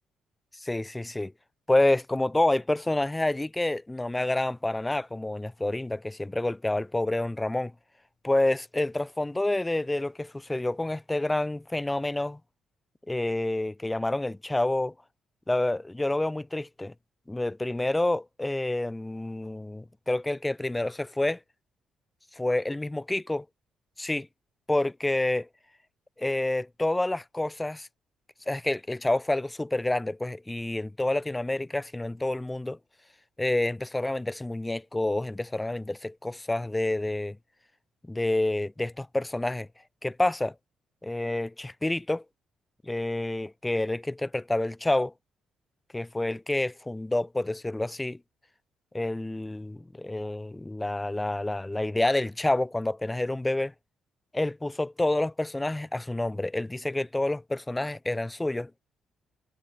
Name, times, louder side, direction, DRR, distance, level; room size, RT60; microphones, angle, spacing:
voice 1, 0.6-1.3 1.7-7.7 8.2-12.4 13.1-14.9 15.5-16.9 17.3-21.4 22.4-23.4 24.0-24.3 24.7-25.5 26.2-27.9 28.5-32.8 33.4-37.4 38.1-39.7 40.0-40.5 41.0-42.2 42.8-45.1 45.9-48.2 48.9-53.7 54.3-58.7, left 2 dB, 10° left, 2.9 m, -28 dB
cardioid pair, 90°, 0 cm